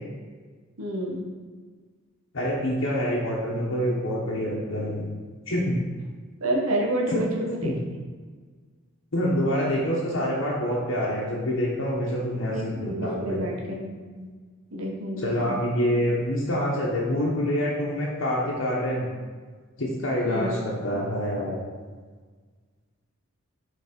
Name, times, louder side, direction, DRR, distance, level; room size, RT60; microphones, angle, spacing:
voice 1, 0.8-1.2 6.4-7.7 12.5-13.5 13.8-13.9 14.2-14.3 14.7-15.6 20.2-20.5, right 1 dB, 75° right, -2 dB, 1.2 m, -29 dB
voice 2, 2.3-5.1 5.5-5.8 7.1-7.2 7.6-7.7 9.1-13.4 15.2-19.1 19.8-21.7, equal, 60° left, -4 dB, 0.9 m, -26 dB
5.5 x 3.4 x 5.1 m, 1.5 s
head